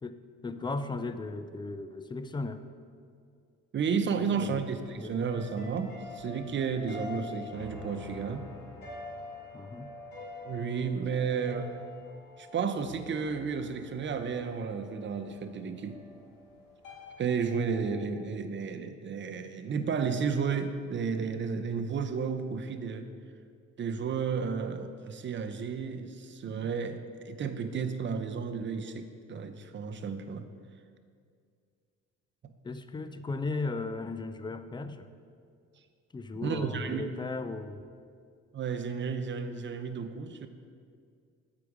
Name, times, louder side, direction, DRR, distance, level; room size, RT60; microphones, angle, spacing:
voice 1, 0.0-2.6 4.2-4.6 5.0-5.2 9.5-9.9 32.6-35.1 36.1-37.8, left 3 dB, 15° left, 11 dB, 0.3 m, -36 dB
voice 2, 3.7-8.5 10.4-11.8 12.4-16.0 17.2-23.1 23.8-30.5 36.4-37.1 38.5-40.5, right 6 dB, 40° right, 7 dB, 0.6 m, -32 dB
sound 1, 4.7-17.9, left 2 dB, 85° left, 1.9 m, -46 dB
8.0 x 4.9 x 4.8 m, 2.3 s
cardioid pair, 90°, 30 cm